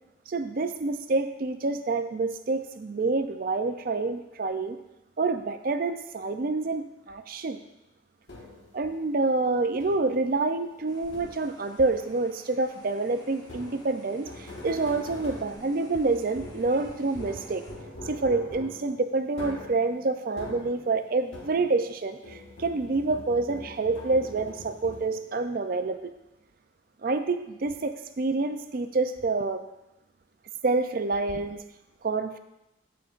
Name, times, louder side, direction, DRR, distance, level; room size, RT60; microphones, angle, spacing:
voice 1, 0.3-4.8 5.2-7.6 8.7-17.6 18.0-26.1 27.0-29.6 30.6-31.6 32.0-32.4, right 3 dB, 45° right, 8 dB, 0.4 m, -27 dB
Tapping metal cake tin, 8.3-8.8 9.8-10.3 11.1-11.7 13.4-21.9 22.2-25.4, left 2 dB, 75° left, 1.6 m, -43 dB
sound 1, 10.9-17.7, equal, 20° left, 1.0 m, -52 dB
14.0 x 5.1 x 2.5 m, 0.93 s
head